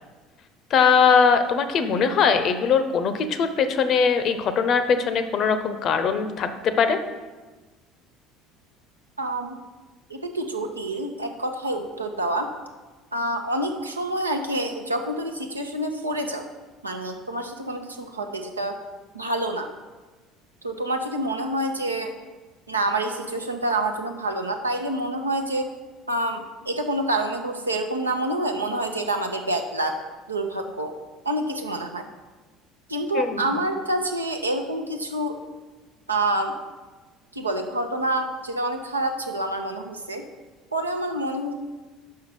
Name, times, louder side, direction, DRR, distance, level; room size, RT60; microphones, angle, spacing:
voice 1, 0.7-7.0 33.1-33.5, left 6 dB, 45° left, 10 dB, 0.7 m, -21 dB
voice 2, 9.2-9.6 10.1-12.5 13.1-16.4 16.8-18.8 19.1-19.7 20.6-22.1 22.7-25.7 26.1-29.9 30.3-30.9 31.2-32.0 32.9-35.4 36.1-36.5 37.3-40.2 40.7-41.5, right 1 dB, 85° right, 4 dB, 0.7 m, -27 dB
5.7 x 5.7 x 6.5 m, 1.3 s
figure-of-eight pair, 60°, 0 cm